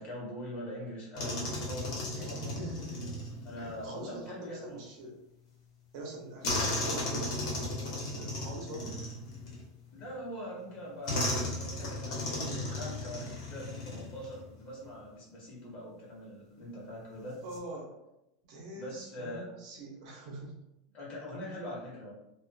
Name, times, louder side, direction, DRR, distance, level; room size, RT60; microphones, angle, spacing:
voice 1, 0.0-2.6 3.4-4.8 9.9-17.4 18.7-19.4 20.9-22.1, equal, 40° left, -4 dB, 1.1 m, -43 dB
sound 1, 1.2-3.9 6.4-9.9 11.1-14.4 14.7-14.9 17.3-17.6, left 1 dB, 75° left, 1.0 m, -35 dB
voice 2, 2.1-3.1 3.6-5.2 5.9-9.0 17.4-17.9 18.4-20.6, right 1 dB, 70° right, -2 dB, 0.8 m, -44 dB
2.4 x 2.4 x 2.3 m, 0.86 s
supercardioid pair, 145°, 4 cm